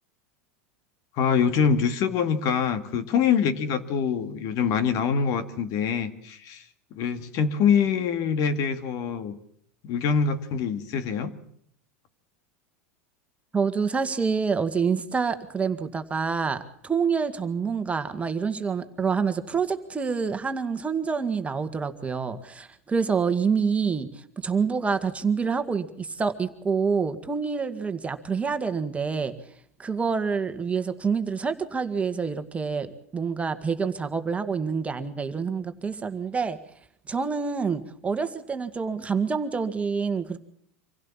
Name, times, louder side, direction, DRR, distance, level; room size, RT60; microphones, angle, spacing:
voice 1, 1.1-6.7 6.9-9.4 9.8-11.3, left 6 dB, 50° left, 10 dB, 2.1 m, -24 dB
voice 2, 13.5-29.3 29.8-32.9 33.1-36.6 37.1-40.4, right 5 dB, 15° right, 8 dB, 1.9 m, -27 dB
25.5 x 16.0 x 7.4 m, 0.67 s
hypercardioid pair, 95°, 8 cm